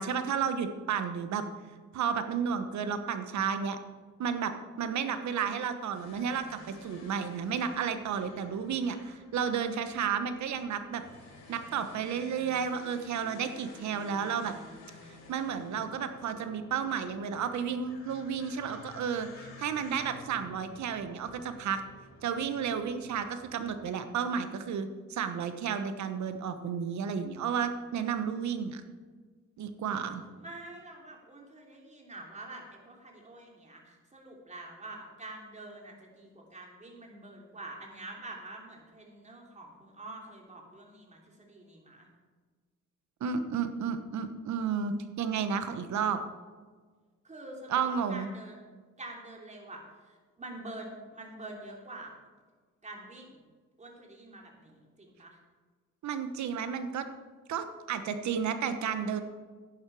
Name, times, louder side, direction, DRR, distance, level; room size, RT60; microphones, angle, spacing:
voice 1, 0.0-1.4 1.9-3.8 4.2-11.0 11.5-14.5 15.3-21.8 22.2-28.8 29.6-30.2 43.2-46.2 47.7-48.3 56.0-57.1 57.5-59.2, right 7 dB, 70° right, 9 dB, 1.1 m, -32 dB
sound 1, 5.9-24.1, left 3 dB, 60° left, 3.8 m, -52 dB
voice 2, 23.1-23.5 30.4-42.1 47.2-48.6 49.0-49.8 50.4-52.1 52.8-53.4 53.8-55.4, right 2 dB, 25° right, 0 dB, 3.1 m, -46 dB
11.0 x 9.9 x 4.8 m, 1.5 s
cardioid pair, 90°, 30 cm